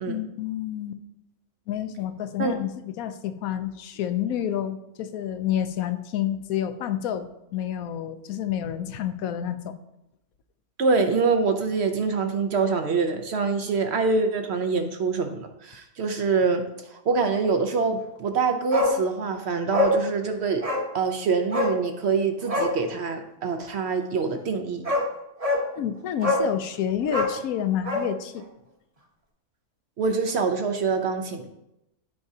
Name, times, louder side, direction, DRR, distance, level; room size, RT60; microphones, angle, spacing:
voice 1, 0.1-1.0 1.7-9.8 25.7-28.4, left 10 dB, 75° left, 10 dB, 1.0 m, -29 dB
voice 2, 10.8-16.6 16.9-20.6 20.9-24.8 30.0-31.5, right 4 dB, 60° right, 6 dB, 0.8 m, -25 dB
Bark, 18.7-19.0 19.3-19.4 19.7-20.0 20.6-20.9 21.5-21.8 22.4-22.7 24.3-24.4 24.8-25.1 25.4-25.7 26.2-26.5 27.0-28.1 28.4-28.5, left 2 dB, 25° right, 1.0 m, -24 dB
12.5 x 4.7 x 2.7 m, 0.86 s
omnidirectional pair, 1.6 m